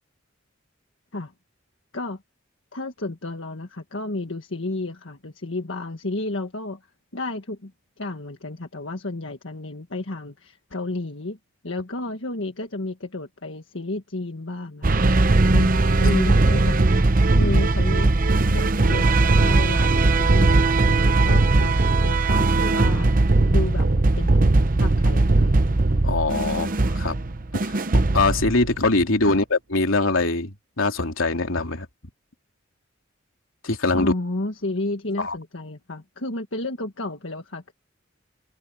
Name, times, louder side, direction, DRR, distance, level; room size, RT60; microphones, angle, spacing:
voice 1, 2.7-6.8 7.1-7.7 8.0-11.4 11.6-18.1 18.5-23.1 23.5-23.9 24.1-24.4 24.8-25.5 29.2-29.3 33.9-37.7, left 2 dB, 70° left, 1.6 m, -32 dB
sound 1, 14.8-28.9, right 2 dB, 45° right, 0.8 m, -19 dB
voice 2, 26.0-27.2 27.6-27.8 28.1-31.9 33.6-34.1 35.2-35.4, left 2 dB, 90° left, 3.0 m, -23 dB
head